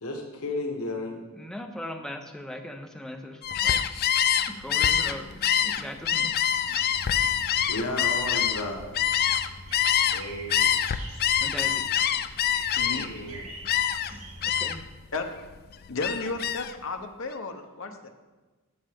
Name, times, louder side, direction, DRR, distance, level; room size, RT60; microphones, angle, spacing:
voice 1, 0.0-1.2 7.7-8.8 10.0-10.7 13.0-13.4, left 2 dB, 85° left, 2 dB, 1.3 m, -33 dB
voice 2, 1.4-3.8 4.5-6.3 11.4-11.8 14.1-14.9, left 1 dB, 5° left, 4 dB, 0.7 m, -39 dB
Gull seagull, 3.4-10.2 10.5-13.2 13.7-14.1 14.4-14.9 15.3-16.7, left 9 dB, 45° left, 0.4 m, -25 dB
sound 1, 6.5-14.6, right 2 dB, 75° right, 1.3 m, -44 dB
voice 3, 12.7-13.2 15.1-15.2 15.9-18.1, left 3 dB, 65° left, 5 dB, 0.8 m, -34 dB
12.5 x 6.6 x 3.5 m, 1.2 s
head